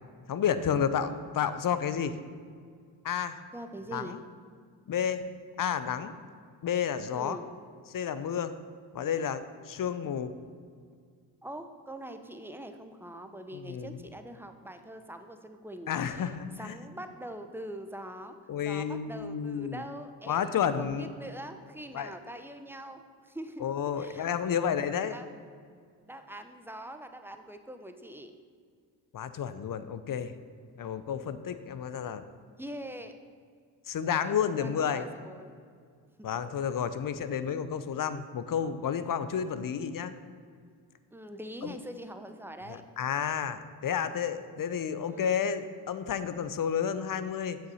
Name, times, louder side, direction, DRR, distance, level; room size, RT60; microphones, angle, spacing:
voice 1, 0.3-2.2 3.0-3.4 3.9-4.2 4.9-5.2 5.6-6.1 6.6-7.4 7.9-8.5 8.9-10.3 13.5-14.0 15.9-16.8 18.5-19.8 20.3-21.1 21.9-22.1 23.6-25.2 29.1-30.3 30.8-32.2 33.9-35.1 36.2-40.1 41.6-41.8 42.7-47.6, left 8 dB, 45° left, 12 dB, 0.7 m, -31 dB
voice 2, 3.5-4.2 7.1-7.4 11.4-16.3 16.6-18.4 18.6-23.7 23.9-24.3 25.1-25.3 26.0-28.3 32.6-33.1 34.2-35.5 41.1-42.8 45.1-45.3, right 1 dB, 5° right, 7 dB, 0.8 m, -43 dB
7.5 x 5.8 x 5.5 m, 2.1 s
hypercardioid pair, 50°, 47 cm